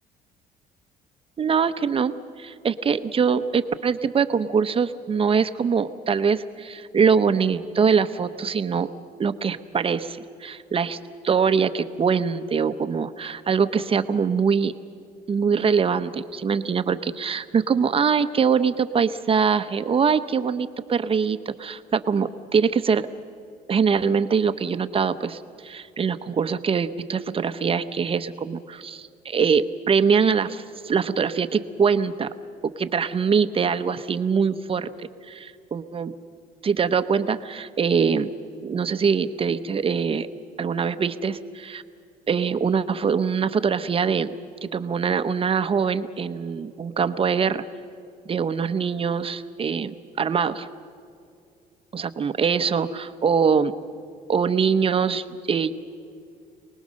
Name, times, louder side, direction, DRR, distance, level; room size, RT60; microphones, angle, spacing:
voice 1, 1.4-8.9 9.2-11.0 11.2-14.7 15.3-23.1 23.7-32.3 32.6-36.1 36.6-38.3 38.6-40.3 40.6-41.8 42.3-44.4 44.6-47.6 48.3-50.7 51.9-53.7 54.3-55.7, right 6 dB, 35° right, 10 dB, 0.8 m, -23 dB
28.0 x 19.5 x 6.4 m, 2.4 s
cardioid pair, 110°, 17 cm